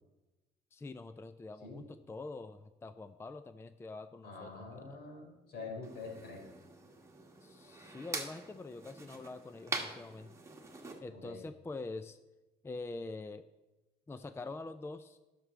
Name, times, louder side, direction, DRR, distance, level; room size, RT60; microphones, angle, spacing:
voice 1, 0.7-5.0 7.4-10.3 11.0-12.2 12.6-13.5 14.1-15.2, left 3 dB, 15° left, 11 dB, 0.4 m, -45 dB
voice 2, 4.2-6.4 11.1-11.4, left 3 dB, 70° left, 1 dB, 4.0 m, -46 dB
sound 1, 5.8-11.0, right 3 dB, 15° right, 1.6 m, -44 dB
11.0 x 6.8 x 6.1 m, 1.1 s
cardioid pair, 110°, 17 cm